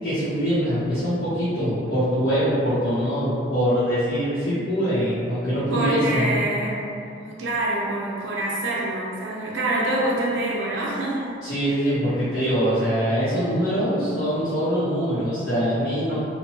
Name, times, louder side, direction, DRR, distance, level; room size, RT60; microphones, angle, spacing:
voice 1, 0.0-6.3 11.4-16.2, equal, 70° left, -13 dB, 0.8 m, -23 dB
voice 2, 5.7-6.9 7.2-11.4, right 1 dB, 80° right, -5 dB, 0.5 m, -26 dB
2.8 x 2.2 x 2.8 m, 2.5 s
head